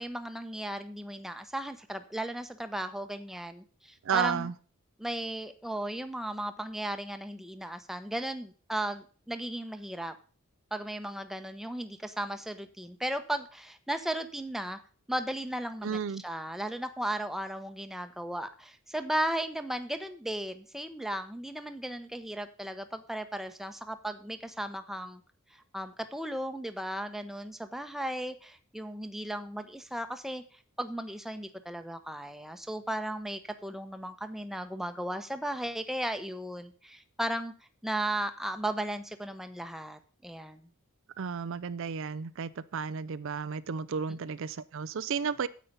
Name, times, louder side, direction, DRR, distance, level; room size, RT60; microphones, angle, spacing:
voice 1, 0.0-4.5 5.0-10.1 10.7-14.8 15.1-25.2 25.5-30.4 30.8-37.5 37.8-40.7, right 1 dB, ahead, 0.9 m, -36 dB
voice 2, 4.0-4.5 15.8-16.2 41.2-45.5, right 6 dB, 60° right, 0.5 m, -32 dB
9.6 x 8.4 x 5.4 m
head